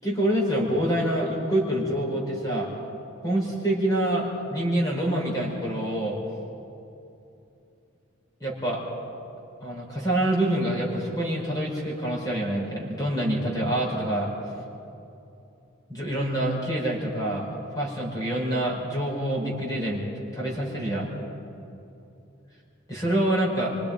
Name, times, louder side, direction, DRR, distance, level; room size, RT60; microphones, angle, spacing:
voice 1, 0.0-2.7 3.2-6.2 8.4-8.8 9.6-14.3 15.9-17.5 17.8-20.0 20.3-21.1 22.9-23.8, right 1 dB, 15° left, -3 dB, 5.4 m, -26 dB
26.0 x 25.5 x 5.2 m, 2.8 s
head